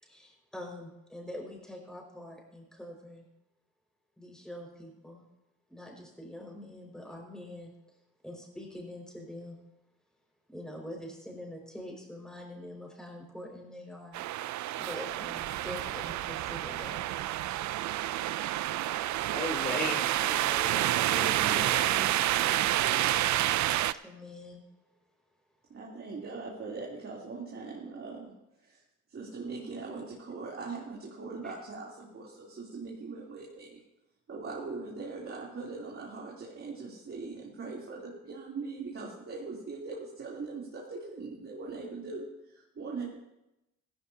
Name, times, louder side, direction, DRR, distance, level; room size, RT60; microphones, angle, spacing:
voice 1, 0.0-3.3 4.2-5.2 5.7-7.7 8.2-9.6 10.5-14.2 14.8-17.0 24.0-24.6 31.4-31.5, left 1 dB, ahead, -1 dB, 5.4 m, -44 dB
sound 1, 14.1-23.9, right 14 dB, 70° right, 0.5 m, -29 dB
voice 2, 19.3-22.1 22.4-23.2, left 1 dB, 30° left, 2 dB, 3.1 m, -39 dB
voice 3, 21.1-22.3 25.7-28.3 28.6-28.8 29.1-33.8 34.3-43.2, right 4 dB, 45° right, -4 dB, 3.3 m, -41 dB
16.0 x 15.0 x 2.8 m, 0.90 s
cardioid pair, 90°, 30 cm